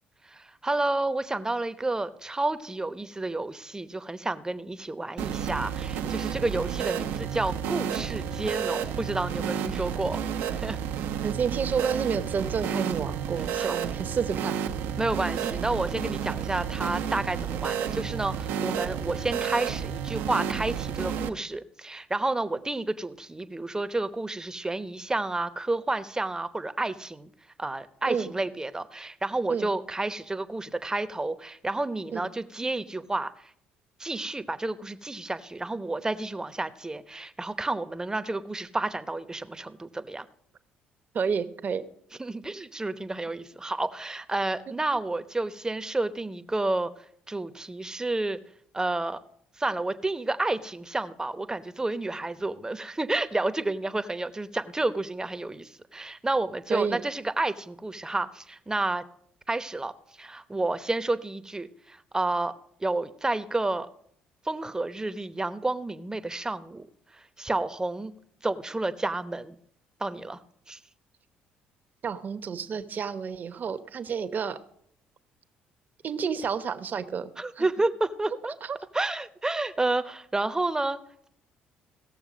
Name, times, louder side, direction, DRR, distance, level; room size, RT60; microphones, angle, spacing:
voice 1, 0.3-10.2 10.5-10.8 13.6-13.8 15.0-27.3 27.6-33.3 34.0-40.3 42.2-46.9 47.3-48.4 48.7-49.2 49.6-59.0 59.5-59.9 60.2-62.5 62.8-63.9 64.4-66.9 67.1-68.1 68.4-69.6 70.0-70.4 70.7-70.8 77.4-78.6 78.9-81.0, right 2 dB, 15° right, 12 dB, 0.9 m, -30 dB
sound 1, 5.2-21.3, right 8 dB, 75° right, 0.9 m, -31 dB
voice 2, 11.2-14.6 15.4-15.5 28.1-28.3 29.5-29.7 32.1-32.3 41.1-41.8 56.7-57.0 72.0-74.6 76.0-77.7 78.6-78.8, right 6 dB, 50° right, 10 dB, 1.0 m, -30 dB
17.5 x 6.9 x 5.1 m, 0.67 s
hypercardioid pair, 60°, 4 cm